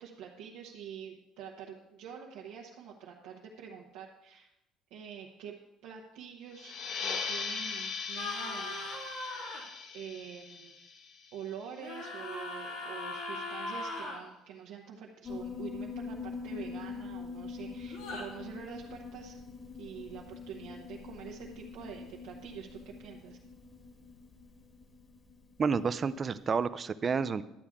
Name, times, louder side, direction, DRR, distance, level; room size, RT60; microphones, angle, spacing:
voice 1, 0.0-4.5 4.9-5.6 5.8-8.9 9.4-10.8 11.3-19.4 19.8-23.4, right 8 dB, 85° right, -2 dB, 1.0 m, -46 dB
sound 1, 6.5-11.8, left 5 dB, 50° left, 0.8 m, -39 dB
sound 2, 8.2-9.6 11.8-14.2 17.9-18.3, left 2 dB, 90° left, 2.9 m, -39 dB
Piano, 15.2-26.0, left 5 dB, 30° left, 1.3 m, -44 dB
voice 2, 25.6-27.4, right 5 dB, 30° right, 14 dB, 0.4 m, -30 dB
11.5 x 8.5 x 3.6 m, 0.90 s
cardioid pair, 140°, 0 cm